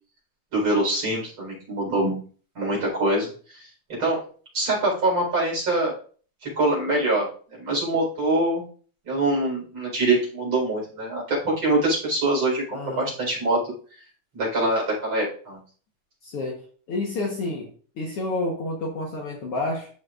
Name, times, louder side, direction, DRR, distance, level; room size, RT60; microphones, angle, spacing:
voice 1, 0.5-2.2 2.5-3.7 4.0-4.2 4.5-5.9 6.4-8.6 9.0-13.7 14.3-15.6, right 2 dB, 40° right, -4 dB, 4.9 m, -24 dB
voice 2, 12.7-13.1 16.2-17.7 18.0-19.9, left 2 dB, 55° left, -1 dB, 1.9 m, -29 dB
13.0 x 5.8 x 2.5 m, 0.43 s
omnidirectional pair, 3.4 m